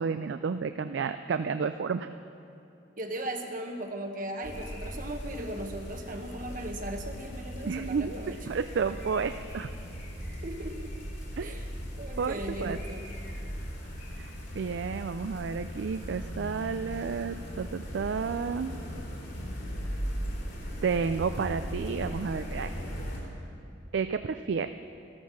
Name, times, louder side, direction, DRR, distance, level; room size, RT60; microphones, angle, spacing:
voice 1, 0.0-2.1 7.7-9.7 11.4-11.5 12.2-12.8 14.2-14.3 14.5-18.7 20.8-22.8 23.9-24.7, right 5 dB, 65° right, 10 dB, 0.4 m, -31 dB
voice 2, 3.0-8.4 10.4-10.9 11.4-11.7 12.0-13.1, right 1 dB, 45° right, 3 dB, 1.0 m, -37 dB
sound 1, 4.4-23.2, equal, 60° left, 3.3 m, -38 dB
13.5 x 12.5 x 6.2 m, 2.7 s
head